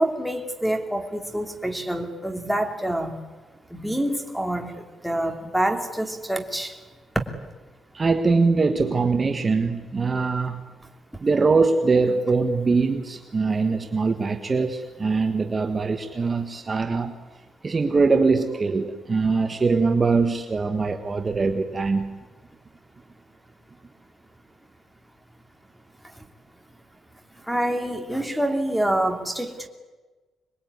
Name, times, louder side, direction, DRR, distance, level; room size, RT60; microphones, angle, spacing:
voice 1, 0.0-3.1 3.7-6.8 27.5-29.7, right 1 dB, ahead, 3 dB, 2.8 m, -26 dB
voice 2, 7.9-10.6 11.2-17.1 17.6-22.1, right 4 dB, 25° right, 5 dB, 1.6 m, -22 dB
26.5 x 21.5 x 9.7 m, 1.3 s
cardioid pair, 140°, 0 cm